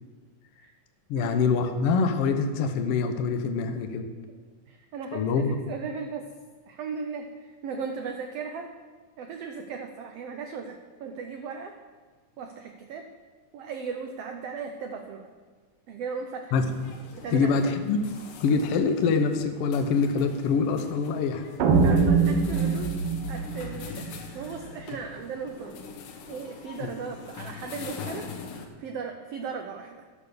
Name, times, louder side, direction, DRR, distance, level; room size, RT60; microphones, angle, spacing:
voice 1, 1.1-4.1 5.1-5.6 16.5-16.6 17.3-18.0 18.4-21.4 26.8-26.9, left 5 dB, 70° left, 6 dB, 1.4 m, -25 dB
voice 2, 4.7-6.2 6.6-8.7 9.2-11.7 12.4-13.1 13.5-15.3 15.9-16.6 17.1-17.5 21.8-22.9 23.3-25.8 26.3-28.3 28.8-30.1, right 5 dB, 85° right, 5 dB, 1.3 m, -37 dB
sound 1, 16.5-28.7, left 5 dB, 85° left, 2.7 m, -43 dB
sound 2, 21.6-24.7, right 5 dB, 70° right, 1.5 m, -23 dB
12.5 x 6.2 x 6.8 m, 1.4 s
omnidirectional pair, 3.7 m